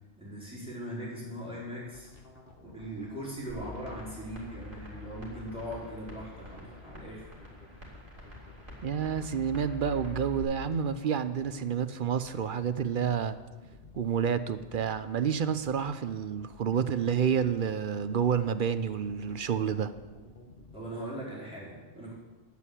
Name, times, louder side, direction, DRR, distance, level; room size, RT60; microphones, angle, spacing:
voice 1, 0.2-2.1 2.6-7.3 20.7-22.1, right 1 dB, 5° right, -7 dB, 4.6 m, -40 dB
sound 1, 1.9-20.8, left 3 dB, 60° left, 1.8 m, -54 dB
sound 2, 3.5-10.4, left 4 dB, 25° right, 3.7 m, -46 dB
voice 2, 8.8-13.4 14.0-19.9, right 7 dB, 55° right, 12 dB, 0.8 m, -29 dB
11.0 x 8.4 x 8.2 m, 1.2 s
omnidirectional pair, 1.1 m